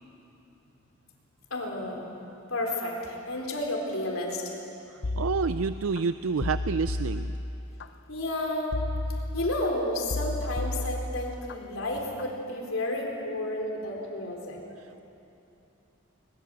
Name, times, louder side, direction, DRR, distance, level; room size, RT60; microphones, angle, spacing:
voice 1, 1.5-2.1 2.5-4.5 8.1-8.8 9.3-14.6, left 1 dB, 80° left, 0 dB, 4.1 m, -31 dB
sound 1, 5.0-6.0 6.4-7.9 8.7-9.7 10.1-11.6 12.0-12.3, left 2 dB, 55° left, 0.6 m, -32 dB
voice 2, 5.2-7.4, right 5 dB, 85° right, 12 dB, 0.5 m, -28 dB
22.0 x 22.0 x 7.7 m, 2.9 s
head